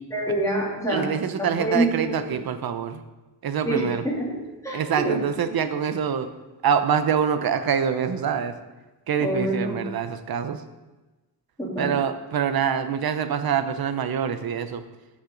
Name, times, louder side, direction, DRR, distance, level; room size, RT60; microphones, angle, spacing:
voice 1, 0.1-1.0 1.4-2.1 3.6-4.4 4.6-5.2 9.2-9.8 11.6-11.9, right 1 dB, 10° left, -5 dB, 2.8 m, -26 dB
voice 2, 0.9-3.0 3.4-4.0 4.7-6.3 6.6-8.6 9.1-10.6 11.8-14.8, right 7 dB, 60° right, 10 dB, 0.8 m, -25 dB
14.5 x 6.1 x 3.9 m, 1.1 s
wide cardioid pair, 140°, 41 cm